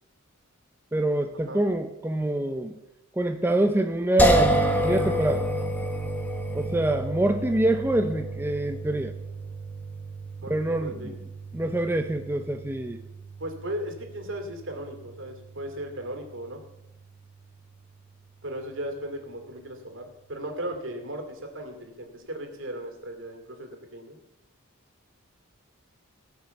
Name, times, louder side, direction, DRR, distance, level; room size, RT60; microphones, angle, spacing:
voice 1, 0.9-2.8 3.2-5.5 6.5-9.1 10.5-11.1 11.5-13.0, right 1 dB, 10° right, 6 dB, 0.5 m, -25 dB
sound 1, 4.2-17.3, right 1 dB, 10° left, 1.2 m, -30 dB
voice 2, 10.4-11.1 13.4-16.6 18.4-24.2, right 1 dB, 65° right, 4 dB, 2.5 m, -36 dB
18.5 x 6.2 x 7.0 m, 0.91 s
head